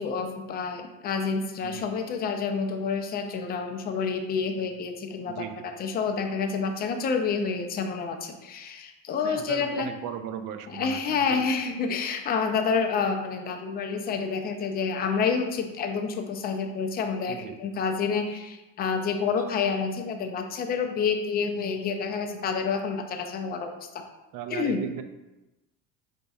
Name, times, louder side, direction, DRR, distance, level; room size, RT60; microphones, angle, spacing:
voice 1, 0.0-9.9 10.7-24.0 24.5-24.8, left 5 dB, 25° left, 5 dB, 0.3 m, -28 dB
voice 2, 5.3-5.7 9.2-11.4 17.3-17.6 24.3-25.0, right 9 dB, 55° right, 8 dB, 0.5 m, -37 dB
5.1 x 4.0 x 2.3 m, 1.0 s
cardioid pair, 145°, 38 cm